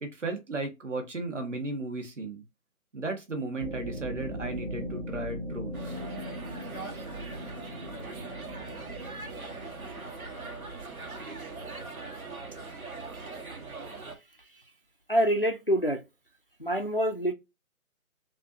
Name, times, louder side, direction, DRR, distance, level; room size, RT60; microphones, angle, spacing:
voice 1, 0.0-2.4 2.9-6.0, right 2 dB, 55° right, 1.6 m, -35 dB
sound 1, 3.6-13.8, equal, 40° right, 0.9 m, -41 dB
sound 2, 5.7-14.2, right 3 dB, 75° right, 1.6 m, -41 dB
voice 2, 15.1-16.0 16.6-17.3, equal, 40° left, 0.5 m, -26 dB
6.0 x 2.7 x 2.7 m
figure-of-eight pair, 180°, 42 cm